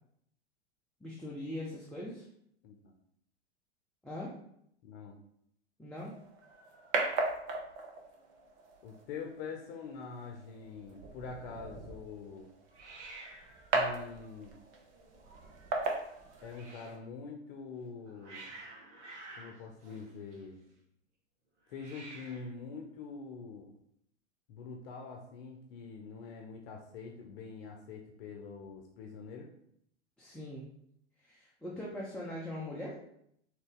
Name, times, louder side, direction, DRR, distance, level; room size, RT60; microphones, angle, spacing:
voice 1, 1.0-2.3 4.0-4.3 5.8-6.1 30.2-30.7 31.2-33.0, left 1 dB, 5° left, -6 dB, 0.6 m, -41 dB
voice 2, 2.6-2.9 4.8-5.2 8.8-12.5 13.7-14.6 16.4-18.4 19.4-20.6 21.7-23.7 24.5-29.5, left 5 dB, 55° left, 2 dB, 0.7 m, -45 dB
sound 1, 6.0-17.0, right 3 dB, 50° right, 1.0 m, -38 dB
Hiss, 6.4-7.8 8.0-8.5 8.7-8.8 9.0-9.7 12.7-17.0 17.8-20.7 21.6-22.6, right 2 dB, 80° right, 1.2 m, -53 dB
3.9 x 2.8 x 3.7 m, 0.71 s
hypercardioid pair, 100°, 35 cm